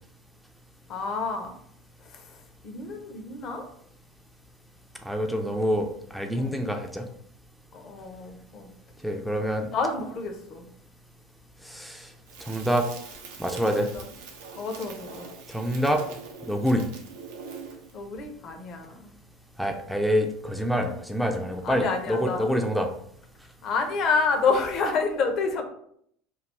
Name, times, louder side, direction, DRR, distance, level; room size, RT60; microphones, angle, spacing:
voice 1, 0.9-1.5 2.0-2.4 2.6-3.7 6.4-6.5 7.7-8.7 9.7-10.7 13.8-14.1 14.6-15.3 16.8-16.9 17.9-19.1 21.6-22.5 23.6-25.6, left 4 dB, 45° left, 4 dB, 0.6 m, -29 dB
voice 2, 5.0-7.1 9.0-9.7 11.6-12.1 12.4-12.9 13.4-13.9 15.5-16.0 16.5-16.8 19.6-22.9, equal, ahead, 4 dB, 0.4 m, -26 dB
Crackle, 12.3-18.0, right 5 dB, 65° right, 0.5 m, -43 dB
3.1 x 2.3 x 3.3 m, 0.68 s
figure-of-eight pair, 70°, 0 cm